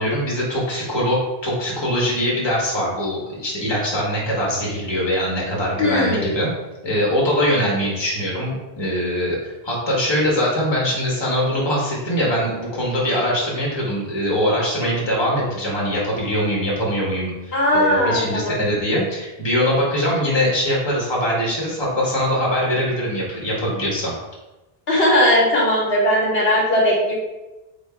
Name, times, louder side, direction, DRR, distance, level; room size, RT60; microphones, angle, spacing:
voice 1, 0.0-6.5 6.8-24.1, equal, 25° left, -4 dB, 1.2 m, -22 dB
voice 2, 5.8-6.4 17.5-18.6 24.9-27.1, left 1 dB, 75° left, -4 dB, 1.3 m, -18 dB
3.5 x 3.0 x 4.3 m, 1.1 s
omnidirectional pair, 1.0 m